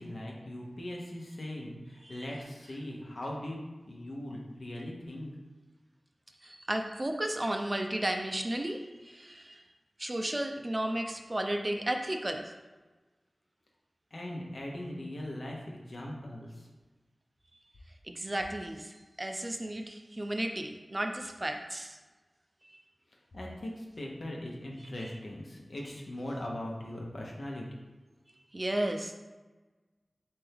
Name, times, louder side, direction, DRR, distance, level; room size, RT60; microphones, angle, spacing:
voice 1, 0.0-3.6 3.9-5.3 14.1-16.7 23.3-27.7, left 1 dB, 65° left, -2 dB, 0.9 m, -40 dB
voice 2, 6.4-9.6 10.0-12.5 18.0-22.0 22.7-22.8 28.5-29.1, right 1 dB, 30° right, 4 dB, 0.4 m, -34 dB
4.3 x 3.4 x 3.4 m, 1.2 s
wide cardioid pair, 75°, 0 cm